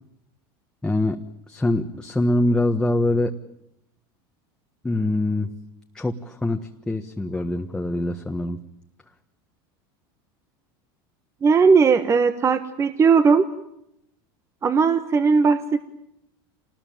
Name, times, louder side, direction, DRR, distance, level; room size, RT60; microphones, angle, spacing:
voice 1, 0.8-3.3 4.8-5.5 5.9-8.6, left 1 dB, 5° left, 3 dB, 1.5 m, -24 dB
voice 2, 11.4-13.4 14.6-15.9, right 5 dB, 25° right, 10 dB, 1.4 m, -18 dB
27.0 x 20.0 x 9.2 m, 0.80 s
supercardioid pair, 120°, 12 cm